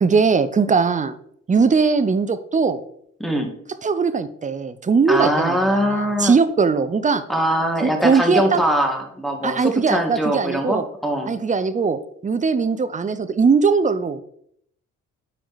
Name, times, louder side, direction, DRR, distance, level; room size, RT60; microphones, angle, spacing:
voice 1, 0.0-1.2 1.5-2.8 3.8-7.2 7.8-8.6 9.4-10.8 11.3-14.2, right 5 dB, 25° right, 12 dB, 0.7 m, -20 dB
voice 2, 5.1-6.3 7.3-11.3, equal, ahead, 3 dB, 1.8 m, -22 dB
8.7 x 4.8 x 4.1 m, 0.68 s
cardioid pair, 90°, 30 cm